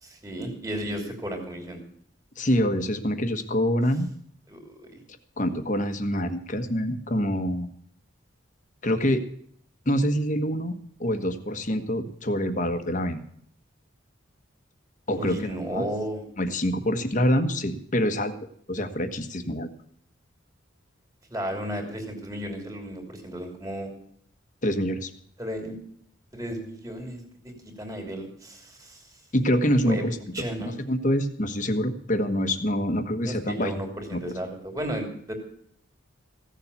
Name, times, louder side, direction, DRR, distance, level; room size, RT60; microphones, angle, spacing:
voice 1, 0.0-1.8 4.5-5.0 15.1-16.2 21.3-23.9 25.4-25.8 26.3-27.5 27.8-29.0 29.9-30.0 30.3-30.7 33.2-35.3, equal, 15° right, 4 dB, 3.0 m, -34 dB
voice 2, 2.4-4.1 5.4-7.7 8.8-9.2 9.8-13.2 15.1-15.8 16.4-18.3 18.7-19.7 24.6-25.1 29.3-30.2 30.6-33.8 34.1-34.3, equal, 40° left, 8 dB, 1.4 m, -26 dB
16.0 x 7.3 x 8.3 m, 0.65 s
head